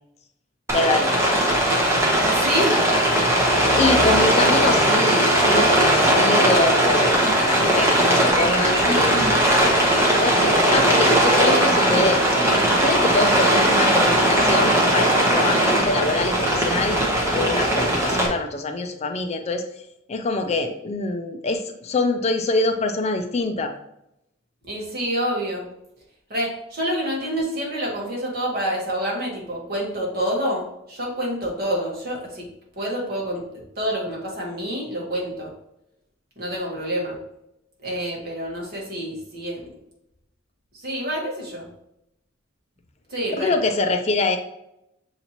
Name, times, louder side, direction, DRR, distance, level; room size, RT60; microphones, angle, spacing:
voice 1, 0.7-1.6 3.3-9.6 10.2-12.2 12.8-19.6 20.1-23.7 43.4-44.4, left 2 dB, 35° left, 7 dB, 0.4 m, -25 dB
Rain, 0.7-18.3, right 1 dB, 15° right, 0.9 m, -19 dB
voice 2, 2.2-2.9 24.6-25.7 26.3-32.5 32.8-35.5 36.4-37.2 37.8-39.7 40.8-41.7 43.1-43.5, equal, 50° right, -3 dB, 1.4 m, -27 dB
6.5 x 2.8 x 2.9 m, 0.82 s
head